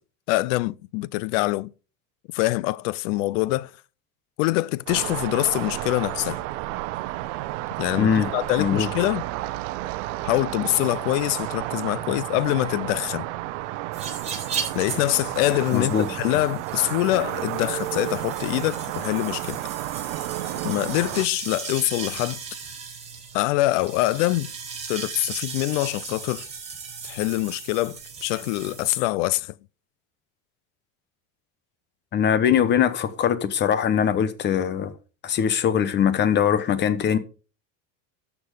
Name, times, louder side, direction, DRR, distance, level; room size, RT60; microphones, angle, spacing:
voice 1, 0.3-1.7 2.3-3.7 4.4-6.4 7.8-9.2 10.2-13.3 14.7-19.6 20.6-22.4 23.3-24.5 24.9-26.5 27.0-29.5, left 19 dB, 70° left, 0.6 m, -24 dB
sound 1, 4.9-21.3, right 17 dB, 70° right, 0.8 m, -31 dB
voice 2, 8.0-8.3 8.6-8.9 15.7-16.1 32.1-34.9 35.2-37.2, left 8 dB, 30° left, 0.9 m, -21 dB
sound 2, 13.9-29.0, right 6 dB, 15° right, 4.5 m, -37 dB
13.0 x 6.2 x 4.9 m
cardioid pair, 155°, 39 cm